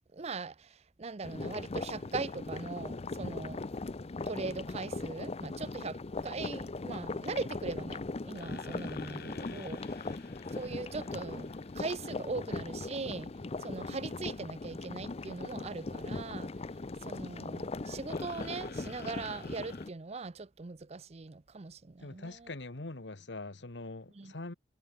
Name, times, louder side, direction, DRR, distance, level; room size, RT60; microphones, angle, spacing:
voice 1, 0.1-3.6 4.3-9.8 10.5-13.3 13.6-16.5 17.0-22.5 24.1-24.3, right 4 dB, 35° right, 0.6 m, -40 dB
sound 1, 1.2-19.9, left 3 dB, 35° left, 0.6 m, -39 dB
sound 2, 2.0-2.7 8.3-12.5 18.1-19.9, left 5 dB, 60° left, 2.3 m, -52 dB
voice 2, 22.0-24.5, left 2 dB, 85° left, 1.5 m, -43 dB
head